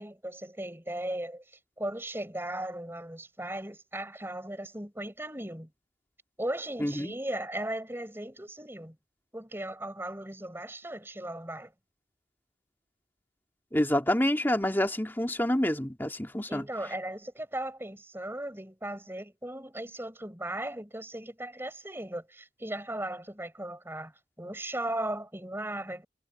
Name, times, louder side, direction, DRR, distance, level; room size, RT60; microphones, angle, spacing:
voice 1, 0.0-1.4 1.8-5.7 6.4-9.0 9.3-11.7 16.5-26.1, right 1 dB, 15° right, 5.5 m, -37 dB
voice 2, 6.8-7.1 13.7-16.7, left 1 dB, 10° left, 2.5 m, -27 dB
head